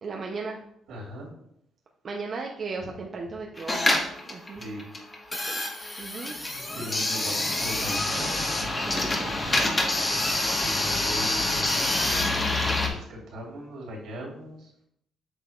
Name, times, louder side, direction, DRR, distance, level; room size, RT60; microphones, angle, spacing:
voice 1, 0.0-0.6 2.0-4.0 4.3-4.7 5.4-5.6 6.0-6.4 8.8-9.6, right 4 dB, 50° right, 1 dB, 0.7 m, -36 dB
voice 2, 0.9-1.3 4.6-4.8 6.7-8.3 10.6-12.6 12.8-14.7, equal, 80° right, -3 dB, 2.5 m, -39 dB
sound 1, 3.6-12.9, left 2 dB, 25° left, 1.4 m, -26 dB
8.1 x 5.7 x 2.5 m, 0.74 s
cardioid pair, 90°, 0 cm